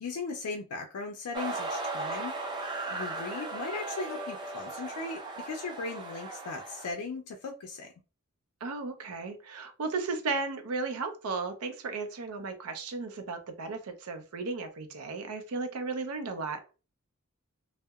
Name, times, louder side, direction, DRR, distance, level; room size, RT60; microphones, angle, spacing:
voice 1, 0.0-7.9, left 4 dB, 85° left, 3 dB, 0.4 m, -38 dB
sound 1, 1.3-6.9, right 2 dB, 20° right, 0.4 m, -37 dB
voice 2, 8.6-16.6, right 3 dB, 75° right, 7 dB, 0.5 m, -35 dB
2.7 x 2.0 x 2.2 m, 0.33 s
head